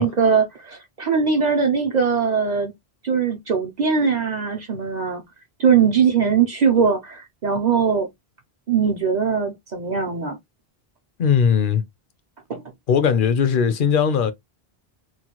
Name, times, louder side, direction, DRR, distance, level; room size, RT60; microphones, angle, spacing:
voice 1, 0.0-2.7 3.0-5.2 5.6-8.1 8.7-10.4 12.5-12.6, right 6 dB, 50° right, 0.6 m, -20 dB
voice 2, 11.2-11.8 12.9-14.3, left 7 dB, 60° left, 0.7 m, -19 dB
3.0 x 2.2 x 2.9 m
omnidirectional pair, 1.0 m